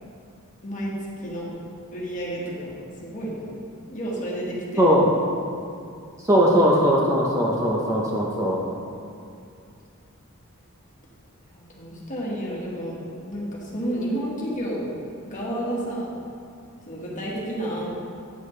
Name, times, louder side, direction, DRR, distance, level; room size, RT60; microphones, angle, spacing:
voice 1, 0.6-0.9 1.2-1.5 1.9-2.7 3.0-3.5 3.9-4.9 11.5-13.0 13.2-14.9 15.2-16.1 16.9-17.9, right 1 dB, 35° left, -5 dB, 1.7 m, -30 dB
voice 2, 4.8-5.1 6.2-8.6, equal, 15° right, -3 dB, 0.7 m, -19 dB
9.5 x 6.9 x 3.2 m, 2.4 s
head